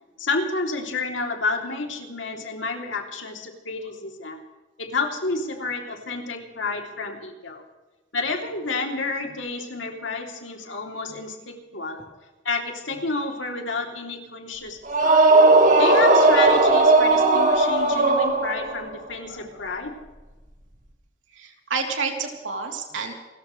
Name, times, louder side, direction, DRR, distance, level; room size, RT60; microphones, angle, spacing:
voice 1, 0.2-4.4 4.8-7.6 8.1-12.0 12.4-15.2 15.7-20.0, left 3 dB, 85° left, 3 dB, 3.0 m, -30 dB
sound 1, 14.9-18.8, right 2 dB, 45° right, 2.2 m, -17 dB
voice 2, 21.3-23.1, right 4 dB, 85° right, 2 dB, 3.2 m, -29 dB
28.5 x 14.0 x 3.2 m, 1.1 s
head